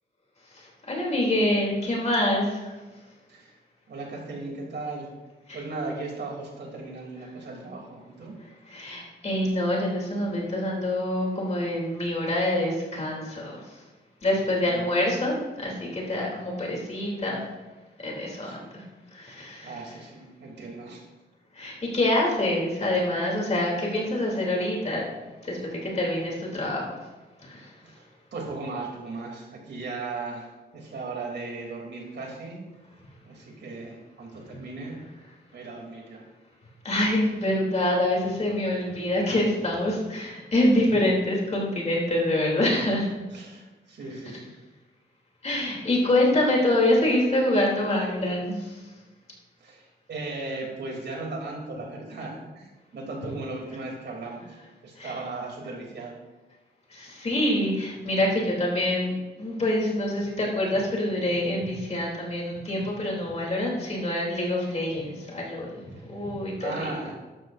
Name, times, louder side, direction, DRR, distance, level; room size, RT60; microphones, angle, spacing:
voice 1, 0.5-2.7 5.5-5.6 8.7-13.8 14.2-17.4 18.0-18.8 19.1-19.8 21.5-25.0 25.4-26.9 27.4-27.7 36.8-43.1 45.4-48.9 55.0-55.2 56.9-67.1, left 1 dB, 35° left, -3 dB, 3.0 m, -26 dB
voice 2, 3.9-5.1 5.5-8.4 14.6-14.9 18.4-18.6 19.6-21.0 27.8-28.1 28.3-32.7 33.2-35.0 35.5-36.3 43.3-44.5 49.6-54.6 54.8-56.2 65.9-66.0 66.6-67.1, right 3 dB, 75° right, -1 dB, 3.0 m, -37 dB
13.5 x 12.0 x 2.6 m, 1.2 s
wide cardioid pair, 155°, 18 cm